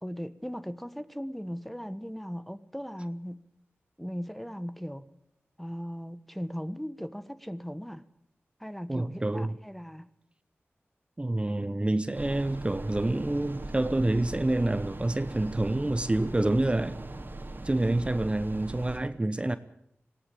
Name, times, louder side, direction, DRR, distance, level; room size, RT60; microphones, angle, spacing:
voice 1, 0.0-3.4 4.0-5.1 5.6-8.0 8.6-10.1, equal, 5° left, 1.2 m, -38 dB
voice 2, 8.9-9.6 11.2-17.0 17.6-19.6, right 2 dB, 25° right, 0.9 m, -27 dB
sound 1, 12.1-19.0, right 2 dB, 50° right, 2.4 m, -40 dB
19.0 x 16.5 x 8.5 m
cardioid pair, 55°, 5 cm